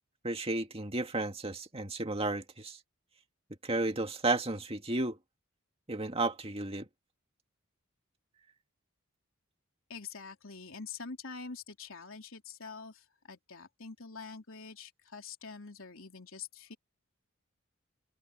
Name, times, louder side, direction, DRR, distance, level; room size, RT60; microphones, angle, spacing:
voice 1, 0.2-2.8 3.6-5.2 5.9-6.9, right 2 dB, 25° right, 2.0 m, -33 dB
voice 2, 9.9-16.8, left 5 dB, 70° left, 3.5 m, -45 dB
head